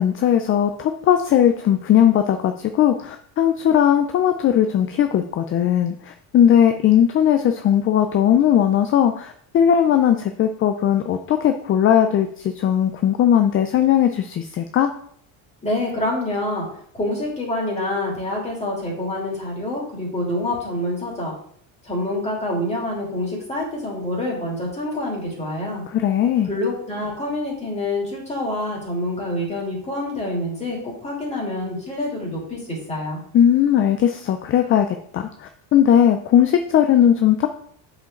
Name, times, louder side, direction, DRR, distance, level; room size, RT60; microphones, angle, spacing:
voice 1, 0.0-12.3 12.6-14.9 25.9-26.5 33.3-34.9 35.1-35.3 35.7-37.5, left 9 dB, 30° left, 7 dB, 0.4 m, -18 dB
voice 2, 15.6-16.7 16.9-21.3 21.8-25.8 26.4-33.2, left 1 dB, 15° left, -4 dB, 2.9 m, -26 dB
8.2 x 5.1 x 3.7 m, 0.62 s
cardioid pair, 135°, 47 cm